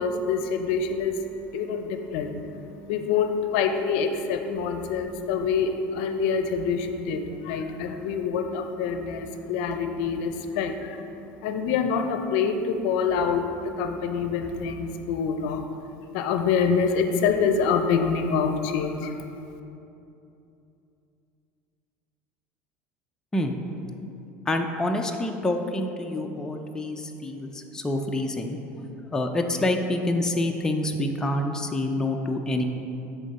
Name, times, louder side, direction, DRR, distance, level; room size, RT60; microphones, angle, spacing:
voice 1, 0.0-15.6 16.1-19.1, left 6 dB, 75° left, 7 dB, 0.5 m, -26 dB
voice 2, 24.5-28.6 29.1-32.6, left 1 dB, 10° left, 3 dB, 0.5 m, -27 dB
10.5 x 3.6 x 4.1 m, 2.8 s
supercardioid pair, 130°, 6 cm